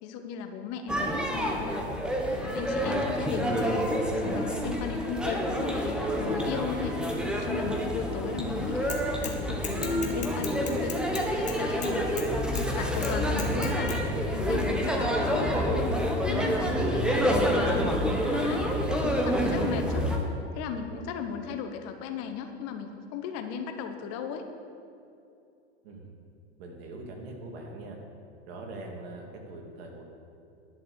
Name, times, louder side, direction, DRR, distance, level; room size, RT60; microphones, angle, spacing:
voice 1, 0.0-1.9 2.3-12.1 12.7-14.0 14.3-18.7 19.0-20.1 20.5-24.5, left 7 dB, 45° left, 7 dB, 1.3 m, -36 dB
sound 1, 0.9-20.2, equal, ahead, 1.5 m, -28 dB
Bicycle / Mechanisms, 8.9-9.4 9.6-12.3 12.6-12.7 13.0-14.0, left 6 dB, 20° left, 1.6 m, -37 dB
voice 2, 26.6-28.0 28.5-30.0, right 2 dB, 60° right, 1 dB, 2.6 m, -42 dB
11.0 x 6.7 x 8.2 m, 2.6 s
hypercardioid pair, 100°, 34 cm